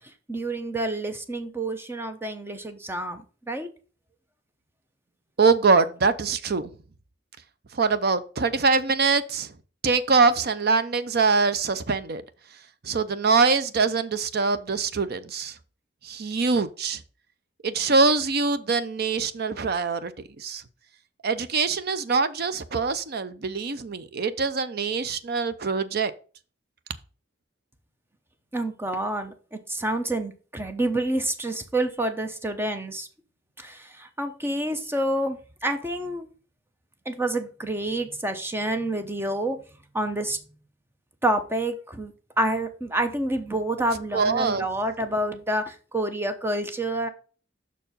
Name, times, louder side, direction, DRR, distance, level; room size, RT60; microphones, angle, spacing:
voice 1, 0.3-3.2 3.5-3.7 28.5-33.1 33.6-36.3 37.1-39.6 39.9-40.4 41.2-47.1, right 1 dB, 15° right, 0.9 m, -28 dB
voice 2, 5.4-6.7 7.7-9.5 9.8-12.2 12.8-15.5 16.0-17.0 17.6-20.1 20.4-20.6 21.2-26.1 44.1-44.7, right 4 dB, 60° right, 0.6 m, -23 dB
6.1 x 4.6 x 5.3 m
head